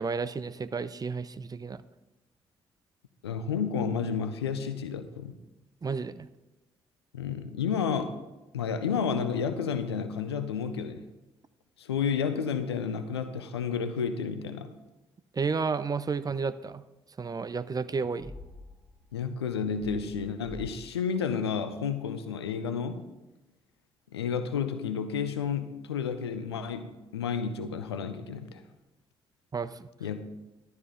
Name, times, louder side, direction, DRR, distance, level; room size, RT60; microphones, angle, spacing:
voice 1, 0.0-1.8 5.8-6.3 15.3-16.8 17.2-18.3 29.5-29.9, right 5 dB, 30° right, 14 dB, 0.6 m, -32 dB
voice 2, 3.2-5.3 7.1-8.2 8.5-11.0 11.8-14.7 19.1-23.0 24.1-28.6 30.0-30.4, left 6 dB, 85° left, 11 dB, 0.6 m, -31 dB
sound 1, 18.2-19.3 19.8-20.7, left 2 dB, 70° right, 3.4 m, -47 dB
12.0 x 11.0 x 3.9 m, 1.0 s
figure-of-eight pair, 40°, 13 cm